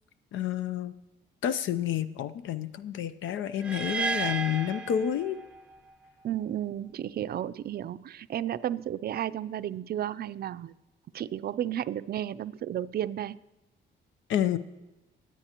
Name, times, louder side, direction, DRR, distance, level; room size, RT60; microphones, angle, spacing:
voice 1, 0.3-0.9 1.4-5.4 14.3-14.6, left 10 dB, 75° left, 14 dB, 0.7 m, -29 dB
sound 1, 3.6-5.8, right 4 dB, 5° right, 0.8 m, -33 dB
voice 2, 6.2-10.7 11.1-13.4, right 11 dB, 50° right, 14 dB, 0.4 m, -33 dB
23.5 x 8.5 x 2.9 m, 1.0 s
cardioid pair, 90°, 20 cm